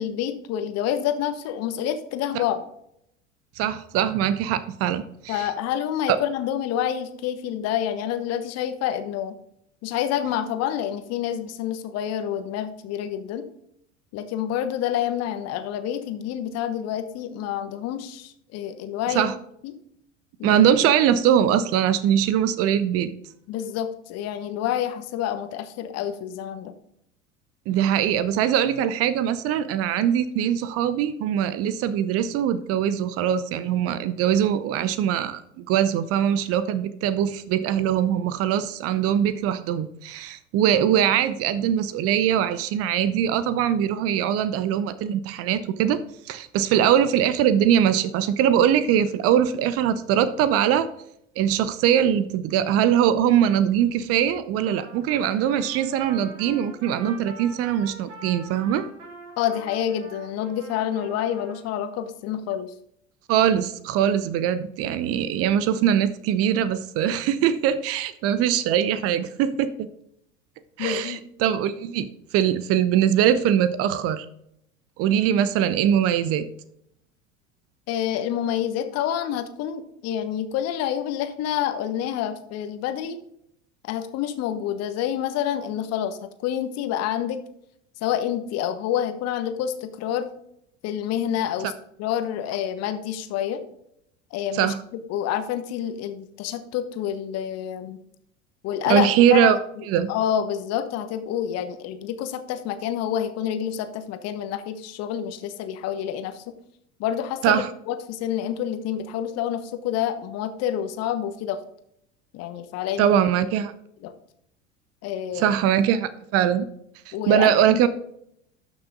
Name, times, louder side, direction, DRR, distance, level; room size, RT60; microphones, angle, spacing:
voice 1, 0.0-2.6 5.3-9.4 9.8-13.4 14.1-19.3 19.6-19.7 20.4-20.6 23.5-26.7 59.4-62.7 70.8-71.2 77.9-83.2 83.8-87.4 88.0-90.3 90.8-91.7 92.0-93.6 94.3-98.0 98.6-99.5 100.1-106.5 107.0-111.6 112.3-113.1 114.0-114.1 115.0-115.5 117.1-117.9, left 10 dB, 40° left, 9 dB, 1.2 m, -28 dB
voice 2, 3.6-5.5 6.1-6.2 19.1-19.3 20.4-23.1 27.7-50.9 51.4-58.8 63.3-69.9 70.8-74.3 75.0-76.5 94.5-94.8 98.9-99.6 99.9-100.1 107.4-107.7 113.0-113.7 115.3-116.7 117.1-117.9, right 9 dB, 40° right, 14 dB, 0.7 m, -22 dB
Trumpet, 54.6-61.7, right 3 dB, 70° right, 2.6 m, -44 dB
12.5 x 6.1 x 3.8 m, 0.73 s
figure-of-eight pair, 75°, 38 cm